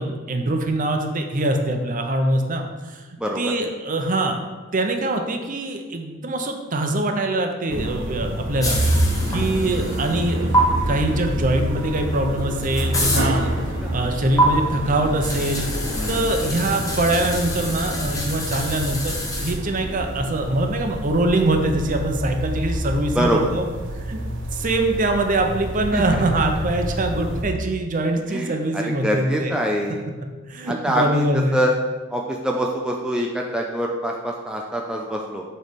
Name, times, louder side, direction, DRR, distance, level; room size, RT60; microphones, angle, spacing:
voice 1, 0.0-3.0 3.4-4.4 4.7-8.8 9.3-10.6 10.8-13.5 13.9-15.7 16.1-23.6 24.1-24.2 24.5-29.5 30.4-31.6, right 1 dB, 40° right, 4 dB, 0.7 m, -23 dB
voice 2, 3.2-3.5 9.3-9.6 13.8-14.0 16.0-16.3 23.1-23.5 25.9-26.2 28.3-30.0 30.7-31.7 32.1-35.4, equal, 5° right, -1 dB, 0.4 m, -25 dB
sound 1, 7.7-27.4, right 1 dB, 65° right, 1.0 m, -28 dB
sound 2, 8.6-10.3 10.5-10.6 11.9-12.0 12.4-13.3 14.4-14.5 15.2-19.5, equal, 15° left, 0.9 m, -27 dB
sound 3, 11.4-20.8, left 3 dB, 90° left, 0.5 m, -38 dB
6.5 x 3.3 x 5.1 m, 1.3 s
head